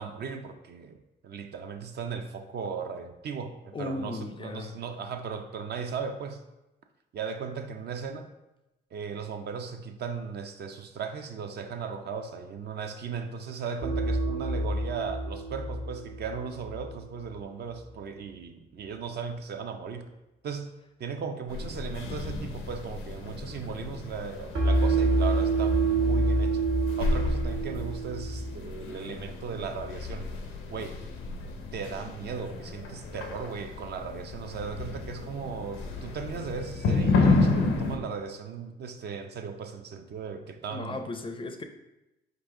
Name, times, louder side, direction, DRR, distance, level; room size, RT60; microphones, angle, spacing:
voice 1, 0.0-6.4 7.1-8.3 8.9-20.1 20.4-20.7 21.0-26.7 27.0-30.3 30.7-31.0 31.7-41.1, right 6 dB, 55° right, 6 dB, 0.5 m, -37 dB
voice 2, 3.7-4.7 40.7-41.6, left 2 dB, 25° left, 6 dB, 0.4 m, -36 dB
sound 1, 13.8-16.9 24.5-28.5, right 2 dB, 75° right, 1.2 m, -27 dB
sound 2, 21.5-38.0, left 3 dB, 90° left, 0.6 m, -31 dB
3.9 x 2.6 x 4.7 m, 0.95 s
cardioid pair, 90°, 20 cm